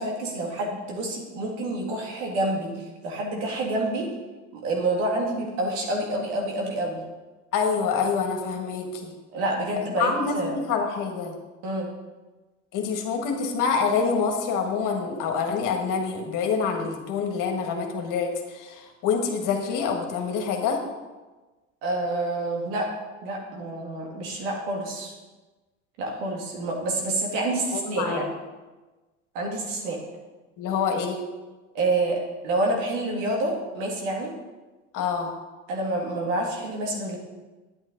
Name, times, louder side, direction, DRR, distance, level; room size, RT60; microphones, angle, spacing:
voice 1, 0.0-4.1 4.5-7.0 9.3-10.5 11.6-11.9 21.8-22.9 23.2-25.1 26.0-28.3 29.3-30.0 31.7-34.3 35.7-37.2, right 2 dB, 80° right, -1 dB, 2.5 m, -28 dB
voice 2, 7.5-9.1 9.9-11.3 12.7-20.8 27.7-28.2 30.6-31.2 34.9-35.3, left 5 dB, 60° left, 2 dB, 1.8 m, -26 dB
9.7 x 9.0 x 4.0 m, 1.2 s
supercardioid pair, 85°, 35 cm